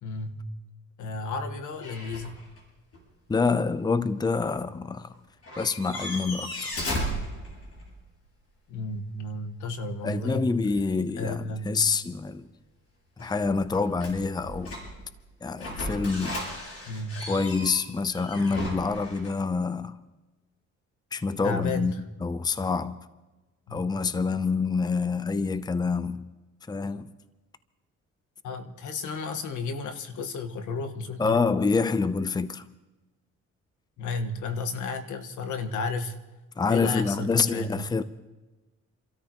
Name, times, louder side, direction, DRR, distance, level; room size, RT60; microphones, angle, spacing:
voice 1, 0.0-0.4 1.0-2.4 8.7-10.5 11.2-11.8 16.9-17.3 21.4-22.0 23.7-23.9 28.4-31.4 34.0-36.1 36.7-38.0, left 3 dB, 80° left, 1.5 m, -33 dB
sound 1, 1.8-2.6 2.9-3.0 5.1-5.2 5.4-8.0 13.2-15.1 15.6-19.3, equal, 50° left, 7.4 m, -36 dB
voice 2, 3.3-5.1 5.6-6.7 10.0-12.5 13.2-14.8 15.4-16.4 17.3-20.0 21.1-21.9 22.2-23.1 23.7-26.3 26.7-27.1 31.2-32.6 36.6-38.0, left 4 dB, 15° left, 0.6 m, -27 dB
30.0 x 13.5 x 3.0 m
cardioid pair, 90°, 30 cm